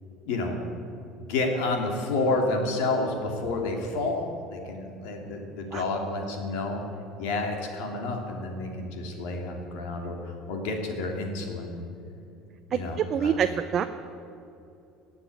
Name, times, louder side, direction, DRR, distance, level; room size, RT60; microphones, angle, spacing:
voice 1, 0.3-0.6 1.2-6.8 7.2-11.8 12.7-13.4, left 2 dB, 85° left, 2 dB, 2.8 m, -30 dB
voice 2, 12.7-13.8, right 8 dB, 30° right, 8 dB, 0.5 m, -26 dB
18.5 x 7.1 x 9.5 m, 2.6 s
cardioid pair, 170°, 0 cm